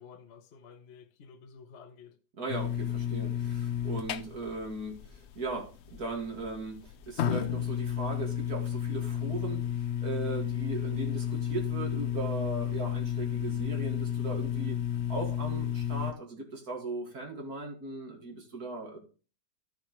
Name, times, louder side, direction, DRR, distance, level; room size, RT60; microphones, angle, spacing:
voice 1, 0.0-2.2, left 6 dB, 50° left, 1.0 m, -52 dB
voice 2, 2.4-14.8 15.1-19.0, right 3 dB, 65° right, 2.6 m, -38 dB
sound 1, 2.5-16.1, left 9 dB, 90° left, 0.6 m, -32 dB
13.0 x 6.4 x 3.1 m
omnidirectional pair, 1.7 m